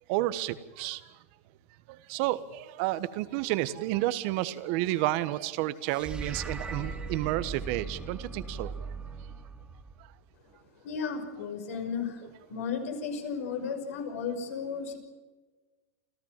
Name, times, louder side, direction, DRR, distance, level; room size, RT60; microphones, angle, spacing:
voice 1, 0.1-1.0 1.9-8.7, right 16 dB, 55° right, 14 dB, 1.3 m, -31 dB
sound 1, 5.9-10.3, right 4 dB, 10° right, 2.6 m, -39 dB
voice 2, 10.8-12.2 12.5-15.0, left 6 dB, 75° left, 5 dB, 5.7 m, -34 dB
28.0 x 14.5 x 7.5 m, 1.3 s
supercardioid pair, 130°, 8 cm